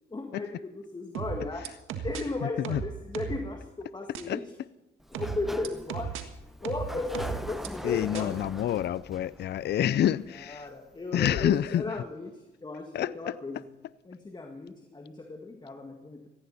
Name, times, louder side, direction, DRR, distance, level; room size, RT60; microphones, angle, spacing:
voice 1, 0.1-1.7 2.0-4.5 5.1-6.1 6.6-8.4 8.6-8.8 10.5-13.7 14.1-16.3, left 3 dB, 20° left, 1.8 m, -36 dB
sound 1, 1.1-2.2 2.6-3.4 4.1-4.2 5.1-6.2 6.6-7.7 8.1-8.2, right 7 dB, 90° right, 1.7 m, -35 dB
voice 2, 2.4-2.8 4.3-4.4 7.8-10.7 11.1-11.9 12.9-13.4, left 11 dB, 60° left, 0.5 m, -28 dB
Sliding door, 5.0-10.7, equal, ahead, 0.8 m, -42 dB
18.5 x 15.5 x 4.2 m
cardioid pair, 90°, 20 cm